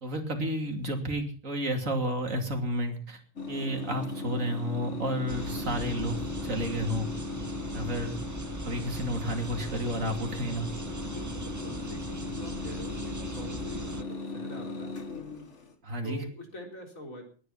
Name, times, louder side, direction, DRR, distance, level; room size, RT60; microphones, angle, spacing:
voice 1, 0.0-3.2 3.5-7.1 7.7-8.2 8.6-10.7 15.8-16.2, equal, 75° right, 5 dB, 3.1 m, -31 dB
sound 1, 3.4-15.7, left 3 dB, 60° left, 2.2 m, -38 dB
sound 2, 5.3-14.0, right 2 dB, 20° right, 0.6 m, -40 dB
voice 2, 11.0-15.0 16.0-17.2, left 1 dB, 85° left, 2 dB, 4.3 m, -44 dB
19.0 x 10.5 x 5.7 m, 0.43 s
omnidirectional pair, 1.4 m